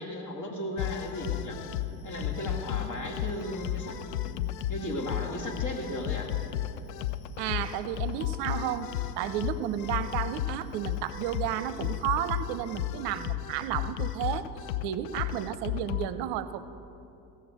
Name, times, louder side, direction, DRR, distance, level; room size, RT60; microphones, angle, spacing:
voice 1, 0.0-1.6 2.0-6.3, left 1 dB, 40° left, 1 dB, 2.4 m, -36 dB
sound 1, 0.8-16.1, left 12 dB, 80° left, 0.6 m, -34 dB
voice 2, 7.4-8.9 9.2-14.5 14.8-16.7, right 11 dB, 60° right, 14 dB, 0.6 m, -32 dB
17.0 x 6.8 x 7.5 m, 2.8 s
hypercardioid pair, 60°, 47 cm